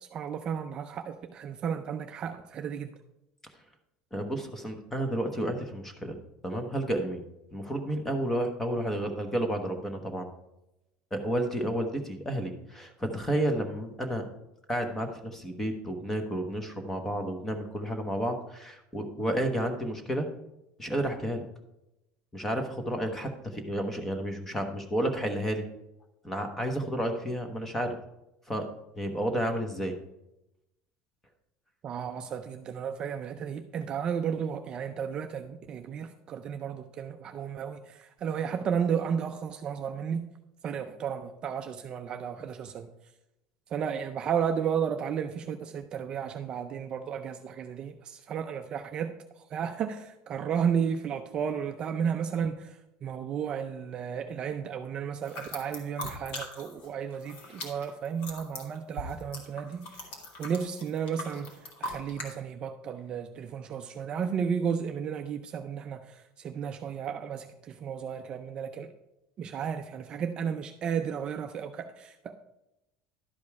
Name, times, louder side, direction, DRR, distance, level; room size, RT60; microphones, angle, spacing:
voice 1, 0.0-2.9 31.8-40.3 40.6-42.9 43.7-60.1 60.4-68.9 69.4-72.4, right 7 dB, 30° right, 0.4 m, -33 dB
voice 2, 4.1-6.2 6.4-7.2 7.5-10.3 11.1-14.3 14.7-20.3 20.8-21.5 22.3-25.6 26.2-28.0 28.5-30.0, right 1 dB, 10° left, 1.0 m, -31 dB
sound 1, 55.2-56.9 57.1-62.3, left 1 dB, 50° left, 2.0 m, -40 dB
11.5 x 5.2 x 4.7 m
cardioid pair, 170°, 3 cm